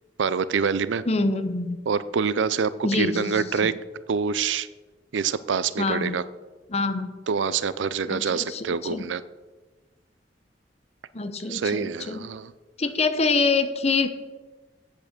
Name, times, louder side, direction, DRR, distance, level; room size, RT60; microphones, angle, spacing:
voice 1, 0.2-1.0 1.9-3.7 4.1-4.7 5.1-6.2 7.3-9.2 11.5-12.5, right 6 dB, 85° right, 16 dB, 0.4 m, -26 dB
voice 2, 1.1-1.8 2.8-3.7 5.8-6.2 6.7-7.1 8.1-9.1 11.1-12.3 12.8-14.1, left 3 dB, 35° left, 9 dB, 0.7 m, -26 dB
8.9 x 8.2 x 6.5 m, 1.3 s
head